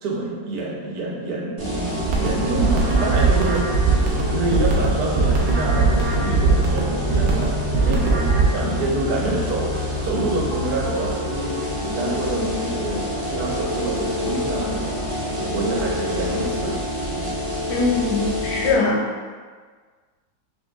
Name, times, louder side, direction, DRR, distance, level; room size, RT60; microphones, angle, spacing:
voice 1, 0.0-3.6 3.9-13.0 13.3-15.0 15.4-17.4, right 3 dB, 60° right, -3 dB, 1.1 m, -27 dB
sound 1, 1.6-18.7, left 2 dB, 35° right, 0.5 m, -27 dB
sound 2, 1.7-16.7, left 1 dB, 35° left, 0.4 m, -35 dB
sound 3, 2.0-8.4, right 4 dB, 80° right, 1.3 m, -21 dB
voice 2, 17.7-19.1, left 3 dB, 75° left, -1 dB, 1.2 m, -21 dB
6.2 x 2.2 x 2.3 m, 1.5 s
omnidirectional pair, 2.0 m